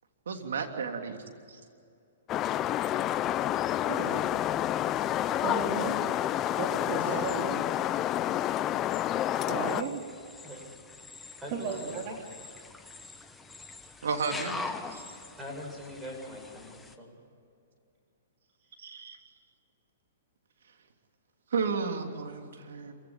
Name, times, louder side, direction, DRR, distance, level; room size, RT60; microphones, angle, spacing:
voice 1, 0.3-1.2 14.0-14.6 14.9-15.0 18.8-19.2 21.5-22.9, right 5 dB, 80° right, 4 dB, 3.1 m, -32 dB
sound 1, 2.3-9.8, left 12 dB, 25° left, 0.6 m, -29 dB
voice 2, 3.8-4.3 5.4-6.0 6.6-7.6 9.5-10.0 11.2-12.2 18.6-18.9, right 5 dB, 40° right, 2 dB, 3.1 m, -35 dB
sound 2, 9.7-16.9, left 3 dB, 10° left, 1.3 m, -43 dB
voice 3, 11.4-12.2 15.4-17.2, equal, 10° right, 0 dB, 7.5 m, -42 dB
27.0 x 16.5 x 8.9 m, 2.4 s
hypercardioid pair, 140°, 0 cm